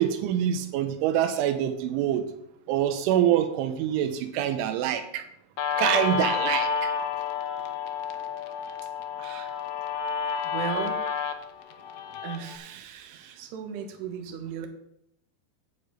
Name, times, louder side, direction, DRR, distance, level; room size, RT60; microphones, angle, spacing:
voice 1, 0.0-2.3 2.7-5.2 5.8-6.9, right 10 dB, 85° right, 8 dB, 3.2 m, -25 dB
Guitar, 5.6-12.6, left 6 dB, 85° left, 2.0 m, -30 dB
voice 2, 9.2-9.5 10.5-10.9 12.2-14.7, right 8 dB, 70° right, 4 dB, 3.0 m, -36 dB
9.9 x 5.1 x 7.8 m, 0.78 s
omnidirectional pair, 5.4 m